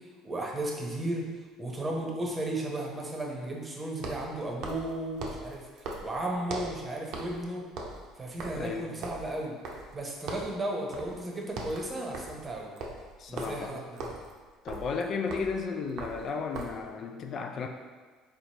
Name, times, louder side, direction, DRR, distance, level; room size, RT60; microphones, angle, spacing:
voice 1, 0.2-1.3 1.6-5.7 6.0-7.6 8.2-9.5 9.9-12.7 13.3-14.2, right 1 dB, 25° right, 0 dB, 0.8 m, -34 dB
sound 1, 0.6-0.7 3.9-6.8 7.1-7.4 7.7-10.0 10.3-10.6 10.9-11.2 11.5-16.9, right 2 dB, 65° right, 0.6 m, -40 dB
voice 2, 8.5-9.0 13.2-13.8 14.6-17.7, left 5 dB, 50° left, 3 dB, 0.3 m, -34 dB
4.0 x 3.0 x 2.9 m, 1.4 s
hypercardioid pair, 70°, 0 cm